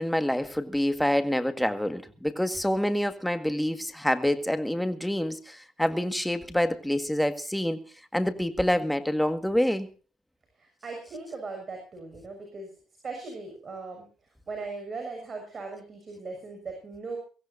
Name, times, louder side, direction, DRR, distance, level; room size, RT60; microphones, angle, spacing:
voice 1, 0.0-7.8 8.1-9.9, left 1 dB, 5° left, 1.8 m, -27 dB
voice 2, 10.6-12.7 13.0-14.1 14.5-17.2, right 3 dB, 35° right, 6.6 m, -38 dB
23.0 x 16.0 x 2.7 m
cardioid pair, 95°, 0 cm